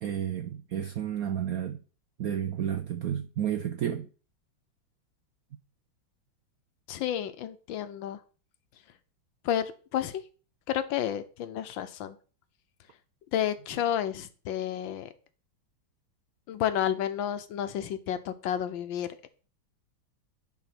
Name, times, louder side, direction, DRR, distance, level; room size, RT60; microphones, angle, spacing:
voice 1, 0.0-1.8 2.2-4.1, right 9 dB, 75° right, 0.8 m, -31 dB
voice 2, 6.9-8.2 9.4-10.2 10.7-12.2 13.3-15.1 16.5-19.3, left 10 dB, 75° left, 1.5 m, -31 dB
10.5 x 3.6 x 5.9 m
omnidirectional pair, 2.2 m